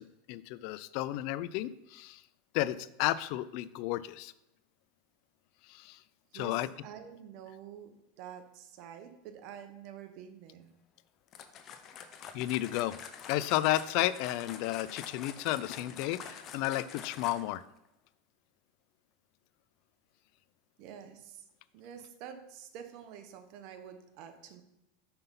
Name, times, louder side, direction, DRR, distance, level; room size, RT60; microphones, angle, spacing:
voice 1, 0.0-2.2 2.5-4.3 5.7-6.0 6.3-6.7 12.3-12.9 13.3-17.6, left 15 dB, 60° left, 17 dB, 0.4 m, -32 dB
voice 2, 6.3-7.9 8.2-10.7 20.8-21.4 21.7-24.6, right 9 dB, 55° right, 7 dB, 1.0 m, -48 dB
sound 1, 11.3-17.6, left 7 dB, 40° left, 0.8 m, -47 dB
5.7 x 5.2 x 5.8 m, 0.86 s
hypercardioid pair, 110°, 0 cm